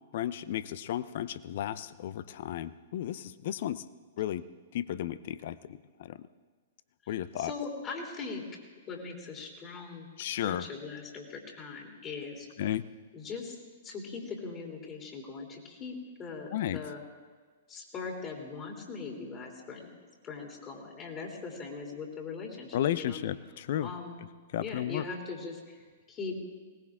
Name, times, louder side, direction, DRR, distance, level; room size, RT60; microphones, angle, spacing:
voice 1, 0.1-3.9 4.2-4.4 4.7-6.3 7.1-7.5 10.2-10.7 12.6-12.9 16.5-16.9 22.7-23.9 24.2-25.1, left 11 dB, 55° left, 16 dB, 0.6 m, -34 dB
voice 2, 7.4-8.4 8.9-10.1 10.5-12.5 13.1-13.6 13.8-17.0 17.7-19.9 20.2-23.2 23.8-24.2 24.6-25.6 26.1-26.3, left 4 dB, 30° left, 0 dB, 3.2 m, -40 dB
21.0 x 18.5 x 3.7 m, 1.5 s
hypercardioid pair, 115°, 0 cm